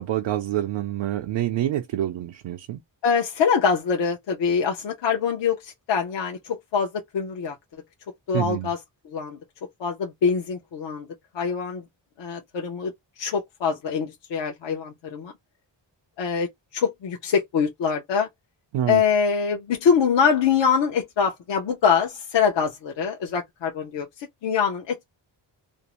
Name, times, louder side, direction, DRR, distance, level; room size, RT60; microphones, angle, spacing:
voice 1, 0.0-2.8 8.3-8.7 18.7-19.0, right 12 dB, 80° right, 0.6 m, -27 dB
voice 2, 3.0-7.6 8.3-9.4 9.8-11.1 11.3-11.8 12.2-15.3 16.2-18.3 18.9-25.0, left 6 dB, 70° left, 0.7 m, -24 dB
2.6 x 2.0 x 2.9 m
cardioid pair, 100°, 45 cm